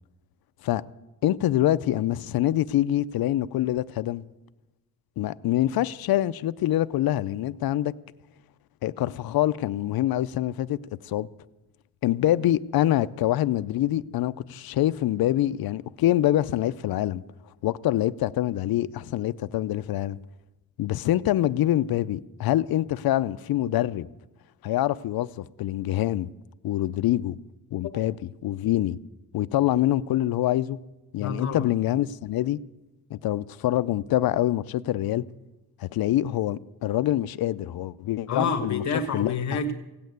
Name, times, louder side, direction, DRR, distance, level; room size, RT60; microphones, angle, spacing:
voice 1, 1.2-4.2 5.2-7.9 8.8-11.3 12.0-17.2 17.6-20.2 20.8-24.1 24.6-26.3 26.6-27.3 27.7-28.1 28.4-29.0 29.3-30.8 31.1-32.6 33.1-35.2 35.8-38.8 39.1-39.3, left 13 dB, 70° left, 0.5 m, -25 dB
voice 2, 31.2-31.7 38.3-39.7, left 4 dB, 50° left, 1.2 m, -28 dB
17.0 x 8.7 x 9.3 m
wide cardioid pair, 180°, 37 cm